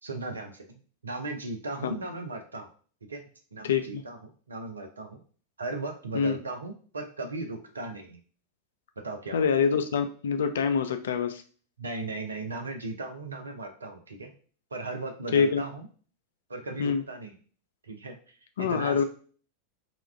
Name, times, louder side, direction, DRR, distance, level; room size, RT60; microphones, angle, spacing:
voice 1, 0.0-0.6 1.0-2.7 3.1-3.2 3.5-5.2 5.6-8.2 9.0-9.5 11.8-14.3 14.7-15.9 16.5-17.4 17.8-19.0, right 2 dB, 75° right, 3 dB, 0.5 m, -37 dB
voice 2, 3.6-4.0 6.1-6.4 9.3-11.4 15.3-15.6 16.8-17.0 18.6-19.0, left 6 dB, 60° left, 9 dB, 0.3 m, -25 dB
2.3 x 2.2 x 3.2 m, 0.42 s
figure-of-eight pair, 90°, 0 cm